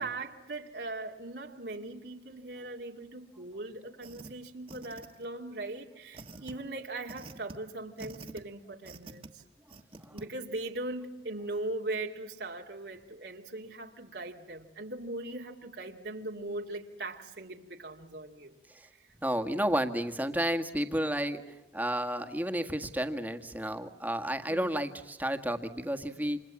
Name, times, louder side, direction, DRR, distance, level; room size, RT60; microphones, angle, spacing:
voice 1, 0.0-9.4 10.1-18.6 18.9-19.0 24.5-24.8, right 2 dB, 75° right, 2.4 m, -40 dB
sound 1, 4.0-4.3 4.7-5.4 6.1-6.5 7.1-7.6 8.0-8.4 8.8-9.3 9.7-10.2, right 2 dB, 30° right, 1.6 m, -46 dB
voice 2, 19.2-21.4 21.7-26.4, equal, 10° right, 1.8 m, -31 dB
29.5 x 27.5 x 7.3 m
head